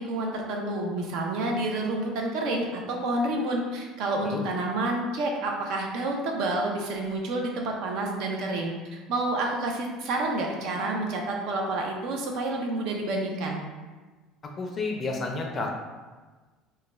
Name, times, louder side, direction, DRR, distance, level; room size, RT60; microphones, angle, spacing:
voice 1, 0.0-13.6, right 2 dB, 65° right, 1 dB, 0.5 m, -29 dB
voice 2, 14.6-15.7, left 3 dB, 30° left, 1 dB, 0.4 m, -30 dB
2.3 x 2.1 x 3.0 m, 1.3 s
cardioid pair, 135°, 0 cm